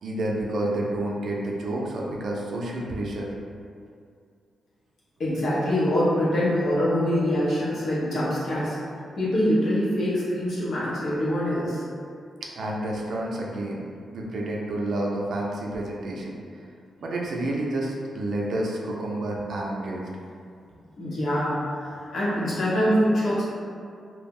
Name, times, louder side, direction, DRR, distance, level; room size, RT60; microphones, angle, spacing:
voice 1, 0.0-3.3 12.4-13.9 14.1-16.3 17.0-20.1, right 1 dB, 65° right, -2 dB, 0.4 m, -29 dB
voice 2, 5.2-8.8 9.2-11.8 21.0-23.4, equal, 65° left, -8 dB, 0.8 m, -24 dB
2.3 x 2.0 x 3.5 m, 2.3 s
cardioid pair, 90°, 0 cm